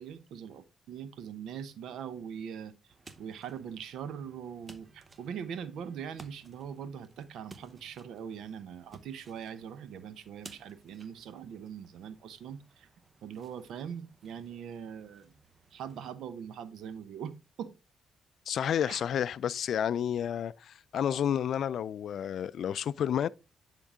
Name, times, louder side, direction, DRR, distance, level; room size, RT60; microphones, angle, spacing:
voice 1, 0.0-2.7 3.2-12.9 13.2-15.3 15.7-17.3 17.6-17.7 18.8-19.0, right 8 dB, 80° right, 0.8 m, -42 dB
sound 1, 2.9-16.1, right 3 dB, 35° right, 0.8 m, -57 dB
voice 2, 18.5-23.3, left 9 dB, 70° left, 0.3 m, -30 dB
9.9 x 3.7 x 3.6 m
cardioid pair, 75°, 0 cm